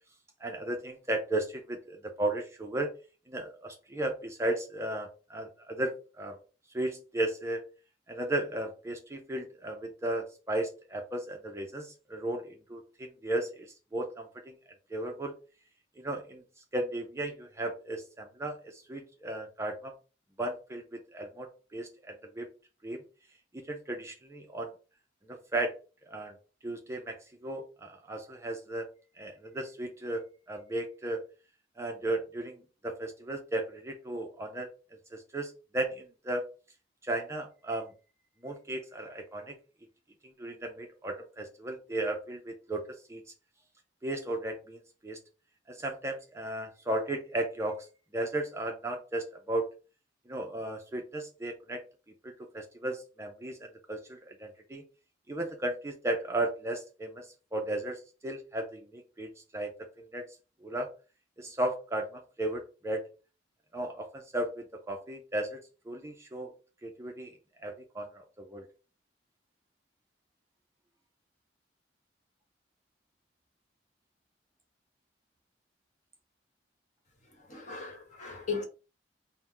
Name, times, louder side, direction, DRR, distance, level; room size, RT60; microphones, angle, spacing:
voice 1, 0.4-2.9 3.3-6.4 6.7-7.6 8.1-14.5 14.9-15.3 16.0-16.4 16.7-19.9 20.4-22.5 22.8-23.0 23.6-24.7 25.3-25.7 26.1-26.4 26.6-28.9 29.2-31.2 31.8-34.7 35.1-36.5 37.0-37.9 38.4-39.6 40.4-42.8 43.1-43.2 44.0-45.2 45.7-47.9 48.1-49.7 50.3-51.8 52.2-54.8 55.3-59.9 60.1-60.3 60.6-60.9 61.4-63.1 63.7-65.6 65.9-66.5 66.8-67.4 67.6-68.6, right 1 dB, 15° right, 0.4 m, -35 dB
voice 2, 77.2-78.6, left 5 dB, 40° left, 1.1 m, -37 dB
3.8 x 2.1 x 4.3 m
head